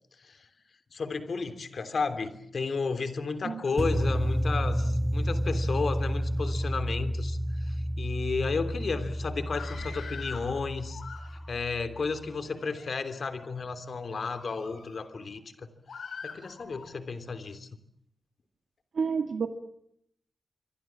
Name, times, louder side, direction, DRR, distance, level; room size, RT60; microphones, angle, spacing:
voice 1, 0.9-11.0 11.3-15.7 16.2-17.7, left 4 dB, 55° left, 10 dB, 3.1 m, -33 dB
sound 1, 3.8-11.9, equal, 15° right, 1.8 m, -30 dB
Screaming, 9.4-10.5 10.9-11.6 12.3-12.9 13.4-13.6 14.1-15.1 15.9-16.9, left 5 dB, 85° left, 6.4 m, -43 dB
voice 2, 18.9-19.5, right 5 dB, 75° right, 7 dB, 1.7 m, -29 dB
26.5 x 25.5 x 7.4 m, 0.71 s
wide cardioid pair, 125°, 0 cm